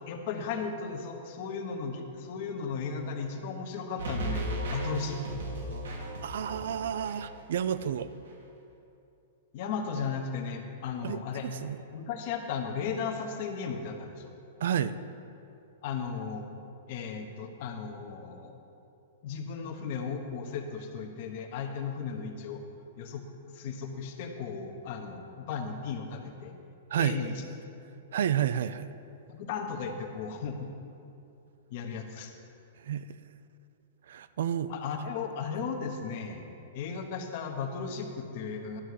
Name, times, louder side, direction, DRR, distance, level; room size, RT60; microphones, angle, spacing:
voice 1, 0.1-5.4 9.5-11.5 11.9-14.3 15.8-16.5 16.9-18.6 19.2-22.6 23.0-26.5 27.0-27.4 29.3-30.7 31.7-32.3 34.7-36.4 36.7-38.8, left 5 dB, 50° left, 4 dB, 1.1 m, -36 dB
sound 1, 4.0-8.0 8.3-8.4, right 1 dB, 90° right, 1.9 m, -36 dB
voice 2, 6.2-8.1 11.0-11.8 14.6-15.0 26.9-27.2 28.1-28.9 32.8-33.1 34.1-34.7, right 9 dB, 70° right, 13 dB, 0.4 m, -30 dB
11.5 x 5.6 x 6.5 m, 2.7 s
hypercardioid pair, 150°, 0 cm